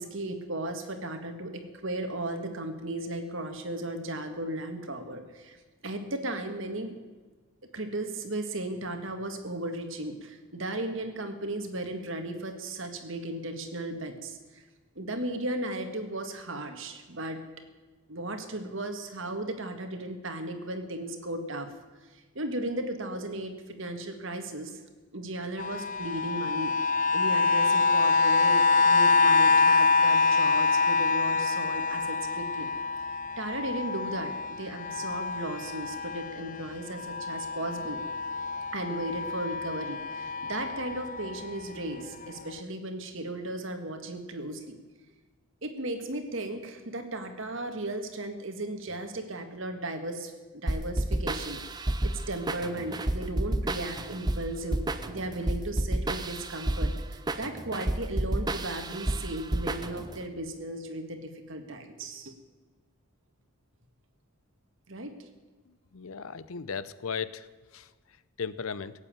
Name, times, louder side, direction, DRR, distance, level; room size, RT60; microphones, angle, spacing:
voice 1, 0.0-5.6 5.8-7.0 7.7-14.6 15.0-17.4 18.1-21.7 22.1-24.8 25.1-26.7 27.1-32.7 33.4-38.0 38.7-44.8 45.6-62.3 64.9-65.3, right 1 dB, 60° right, 6 dB, 1.9 m, -36 dB
sound 1, 25.6-36.6 37.0-41.6 42.2-42.3, left 4 dB, 35° left, 0.4 m, -26 dB
sound 2, 50.7-60.2, right 1 dB, 20° right, 0.7 m, -31 dB
voice 2, 65.7-67.5 67.7-67.9 68.4-68.9, left 6 dB, 75° left, 17 dB, 0.7 m, -36 dB
17.0 x 8.5 x 9.0 m, 1.3 s
head